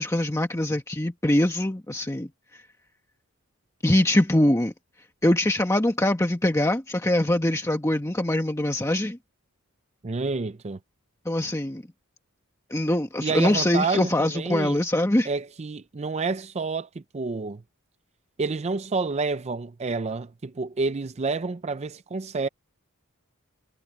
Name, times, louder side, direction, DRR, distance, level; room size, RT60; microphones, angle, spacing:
voice 1, 0.0-2.6 3.8-4.7 5.2-9.2 11.2-11.8 12.7-15.3, left 1 dB, 15° left, 1.3 m, -23 dB
voice 2, 10.0-10.8 13.2-14.8 15.3-17.6 18.4-22.5, right 4 dB, 30° right, 0.5 m, -29 dB
head